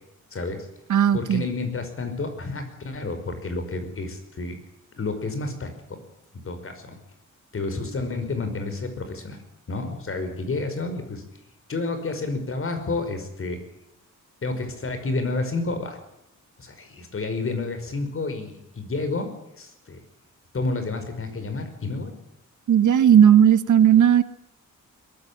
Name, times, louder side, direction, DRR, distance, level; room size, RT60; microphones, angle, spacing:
voice 1, 0.3-0.7 1.1-4.6 5.0-6.0 6.4-7.0 7.5-9.4 9.7-11.2 11.7-13.6 14.4-16.0 16.6-19.3 19.6-20.0 20.5-22.1 22.8-22.9, left 3 dB, 45° left, 7 dB, 5.4 m, -30 dB
voice 2, 0.9-1.4 22.7-24.2, right 9 dB, 70° right, 13 dB, 1.3 m, -16 dB
22.0 x 15.0 x 8.7 m, 0.83 s
cardioid pair, 110°, 31 cm